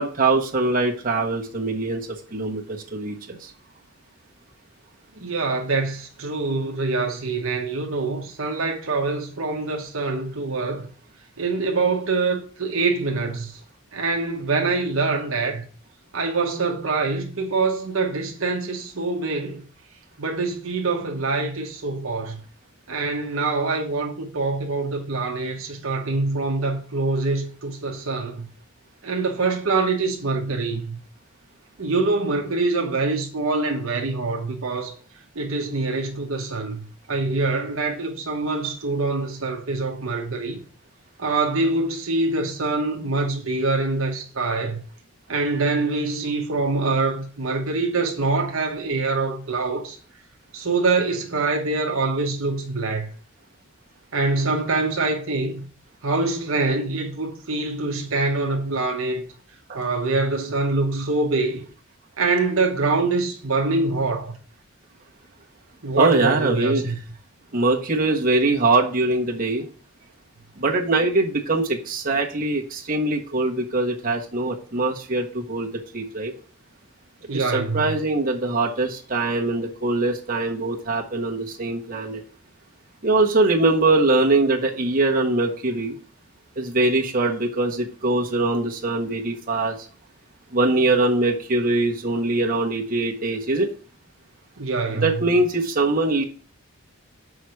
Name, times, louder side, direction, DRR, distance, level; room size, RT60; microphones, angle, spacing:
voice 1, 0.0-3.5 59.7-59.8 66.0-66.9 67.5-69.6 70.6-76.3 77.3-82.2 83.0-85.9 86.6-89.7 90.5-93.7 95.0-96.2, right 2 dB, 40° right, 1.4 m, -22 dB
voice 2, 5.2-10.9 11.4-13.6 13.9-15.6 16.1-19.6 20.2-22.4 22.9-28.5 29.0-31.0 31.8-34.9 35.3-40.6 41.2-44.8 45.3-50.0 50.5-53.1 54.1-55.7 56.0-59.2 59.7-61.6 62.2-64.3 65.8-67.0 77.3-77.8 94.6-95.1, right 3 dB, 70° right, 1.1 m, -24 dB
6.3 x 4.7 x 6.4 m
head